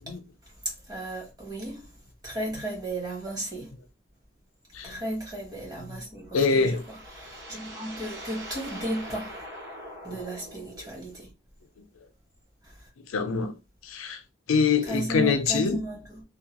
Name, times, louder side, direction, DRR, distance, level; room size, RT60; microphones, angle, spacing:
voice 1, 0.9-1.9 2.2-3.7 4.8-9.3 10.0-11.3 12.6-12.7 14.8-16.2, right 1 dB, 20° right, 1.1 m, -34 dB
sound 1, 6.1-11.3, equal, 55° right, 1.3 m, -43 dB
voice 2, 6.3-6.8 13.1-13.5 13.8-14.2 14.5-15.8, left 5 dB, 85° left, 0.5 m, -24 dB
2.8 x 2.2 x 2.9 m
head